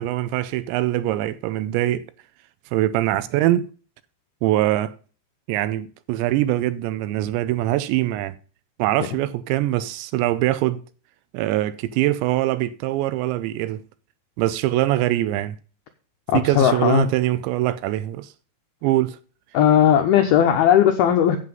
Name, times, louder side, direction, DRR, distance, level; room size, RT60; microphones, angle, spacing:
voice 1, 0.0-2.1 2.7-3.7 4.4-5.0 5.5-8.4 8.8-10.8 11.3-13.8 14.4-15.6 16.3-18.3 18.8-19.2, right 15 dB, 80° right, 2.7 m, -23 dB
voice 2, 16.3-17.0 19.5-21.5, left 10 dB, 85° left, 2.2 m, -17 dB
8.3 x 7.8 x 5.3 m
omnidirectional pair, 5.3 m